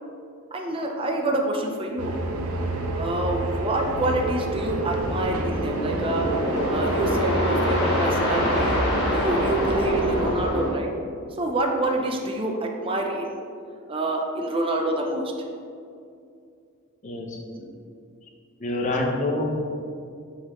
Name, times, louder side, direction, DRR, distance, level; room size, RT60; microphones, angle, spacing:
voice 1, 0.5-2.2 2.9-6.3 6.7-8.8 9.1-10.9 11.4-13.3 13.9-15.3, right 2 dB, 25° right, 1 dB, 0.5 m, -27 dB
sound 1, 2.0-10.5, right 1 dB, 80° right, 0.6 m, -29 dB
sound 2, 4.5-10.7, equal, 55° left, 1.5 m, -26 dB
voice 2, 17.0-17.7 18.6-19.7, left 2 dB, 35° left, 0 dB, 0.8 m, -27 dB
7.4 x 4.3 x 3.0 m, 2.4 s
head